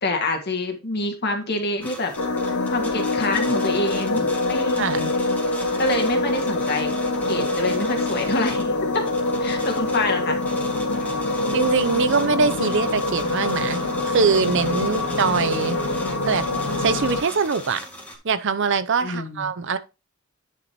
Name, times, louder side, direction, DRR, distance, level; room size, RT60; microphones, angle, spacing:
voice 1, 0.0-2.1 2.4-4.9 5.8-6.9 7.3-9.1 9.4-10.4 14.8-15.2 19.0-19.5, left 2 dB, 50° left, 2.2 m, -26 dB
sound 1, 1.8-18.2, equal, 10° left, 2.2 m, -38 dB
sound 2, 2.2-17.2, left 2 dB, 80° left, 1.1 m, -25 dB
voice 2, 4.8-5.1 11.5-13.8 14.1-15.8 16.3-16.4 16.8-17.8 18.2-19.8, right 5 dB, 60° right, 0.7 m, -22 dB
10.0 x 6.8 x 3.1 m
head